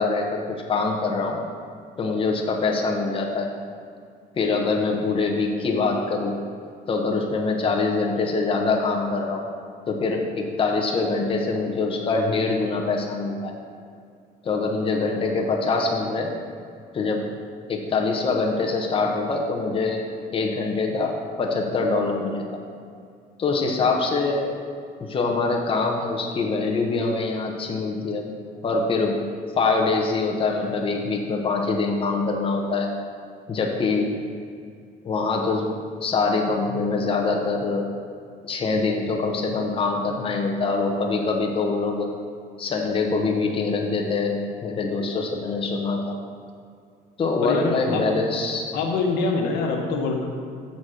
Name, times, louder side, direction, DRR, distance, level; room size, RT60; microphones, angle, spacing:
voice 1, 0.0-1.4 2.0-3.5 4.4-6.4 6.9-9.4 9.9-13.5 14.4-16.3 16.9-17.3 17.7-22.6 23.4-24.6 25.0-28.3 28.6-29.2 29.5-32.9 33.5-34.2 35.0-35.7 36.0-37.9 38.4-42.1 42.6-46.2 47.2-48.7, left 3 dB, 30° left, 1 dB, 0.8 m, -24 dB
voice 2, 47.4-48.1 48.7-50.3, left 3 dB, 85° left, 1 dB, 1.0 m, -24 dB
6.5 x 4.1 x 6.2 m, 2.3 s
cardioid pair, 110°, 17 cm